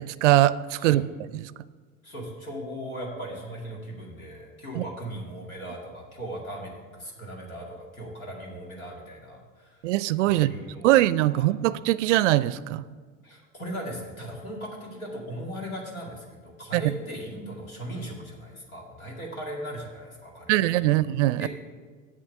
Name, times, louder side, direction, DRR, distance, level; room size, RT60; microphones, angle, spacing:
voice 1, 0.0-1.0 4.8-4.9 9.8-10.5 10.8-12.8 16.7-16.8 20.5-21.5, right 15 dB, 60° right, 18 dB, 0.5 m, -22 dB
voice 2, 2.0-9.8 10.2-10.9 11.3-11.5 13.2-21.0 21.4-21.5, right 1 dB, 85° left, -2 dB, 2.3 m, -38 dB
7.8 x 7.3 x 6.6 m, 1.5 s
figure-of-eight pair, 75°, 41 cm